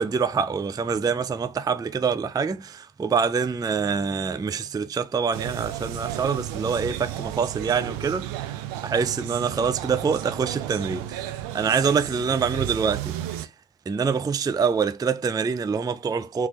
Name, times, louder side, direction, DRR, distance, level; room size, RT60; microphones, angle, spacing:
voice 1, 0.0-13.1 13.9-16.5, right 5 dB, 10° right, 0.4 m, -25 dB
sound 1, 5.3-13.5, right 12 dB, 70° right, 0.6 m, -33 dB
3.4 x 3.0 x 2.8 m
hypercardioid pair, 45°, 36 cm